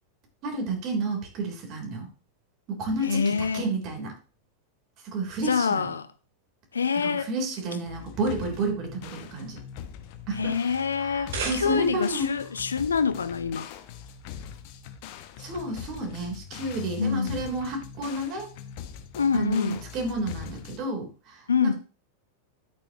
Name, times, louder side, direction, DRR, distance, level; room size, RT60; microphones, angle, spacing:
voice 1, 0.4-2.1 2.7-4.2 5.0-5.9 7.0-9.6 10.3-10.6 11.0-12.3 15.4-18.5 19.3-21.7, right 2 dB, 40° right, 3.5 m, -31 dB
voice 2, 3.0-3.6 5.5-6.1 6.7-7.3 10.3-13.7 17.0-17.3 19.1-19.8 21.5-21.7, left 6 dB, 70° left, 0.7 m, -26 dB
sound 1, 7.9-20.8, left 9 dB, 45° left, 1.0 m, -42 dB
sound 2, 11.0-12.2, right 4 dB, 60° right, 2.8 m, -35 dB
11.5 x 8.8 x 3.0 m
figure-of-eight pair, 90°, 0 cm